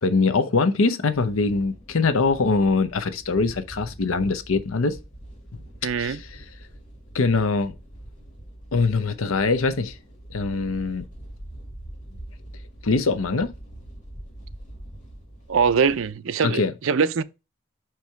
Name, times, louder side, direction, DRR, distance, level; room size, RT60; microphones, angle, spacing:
voice 1, 0.0-5.0 5.5-5.6 6.0-6.4 7.1-7.7 8.7-10.0 10.3-11.0 12.8-13.5 16.4-16.7, left 4 dB, 80° left, 0.7 m, -23 dB
sound 1, 1.1-16.1, right 1 dB, 40° left, 2.6 m, -43 dB
voice 2, 5.8-6.2 15.5-17.2, right 6 dB, 75° right, 0.5 m, -22 dB
5.9 x 4.6 x 4.5 m
head